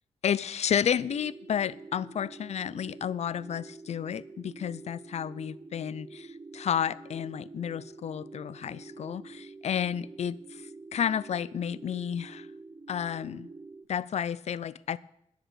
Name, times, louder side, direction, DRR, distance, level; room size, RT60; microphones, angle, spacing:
voice 1, 0.2-10.6 10.9-12.5 12.9-13.5 13.9-15.0, left 8 dB, 60° left, 0.5 m, -31 dB
sound 1, 0.9-13.9, right 3 dB, 30° right, 0.6 m, -47 dB
10.5 x 10.0 x 6.7 m
wide cardioid pair, 115°, 12 cm